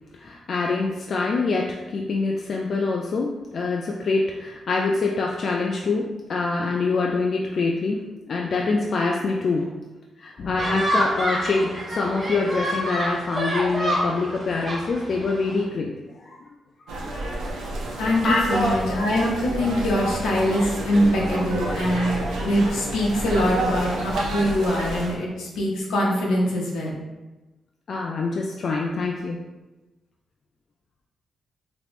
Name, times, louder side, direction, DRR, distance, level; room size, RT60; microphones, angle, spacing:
voice 1, 0.2-9.8 10.2-15.9 16.2-16.4 18.2-19.0 27.9-29.4, left 3 dB, 60° left, 0 dB, 0.3 m, -25 dB
sound 1, 10.6-15.6, right 1 dB, 45° right, 0.9 m, -28 dB
sound 2, 16.9-25.1, right 1 dB, 90° right, 0.5 m, -29 dB
voice 2, 18.0-27.0, equal, 90° left, -3 dB, 0.7 m, -23 dB
3.4 x 2.9 x 2.5 m, 1.1 s
supercardioid pair, 60°, 0 cm